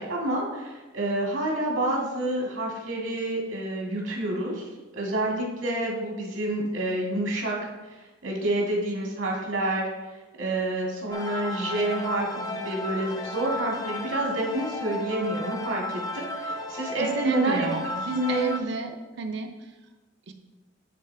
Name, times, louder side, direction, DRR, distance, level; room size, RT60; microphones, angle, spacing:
voice 1, 0.0-7.7 8.2-9.9 10.4-18.5, right 1 dB, 85° right, -2 dB, 2.0 m, -28 dB
sound 1, 11.1-18.6, left 1 dB, 20° left, 0.4 m, -34 dB
voice 2, 17.0-19.5 20.3-20.4, right 5 dB, 60° right, 4 dB, 0.6 m, -31 dB
10.0 x 4.0 x 3.4 m, 1.2 s
head